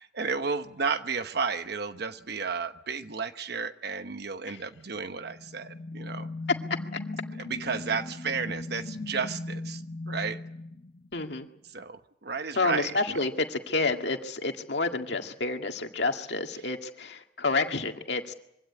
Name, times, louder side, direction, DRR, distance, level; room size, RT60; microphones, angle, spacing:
voice 1, 0.0-6.3 7.4-9.8 10.1-10.4 11.7-13.2, right 5 dB, 65° right, 9 dB, 1.0 m, -32 dB
sound 1, 5.0-11.5, left 2 dB, 50° left, 1.6 m, -38 dB
voice 2, 11.1-11.5 12.5-18.3, left 3 dB, 70° left, 4 dB, 2.0 m, -29 dB
24.0 x 16.5 x 9.9 m, 0.83 s
head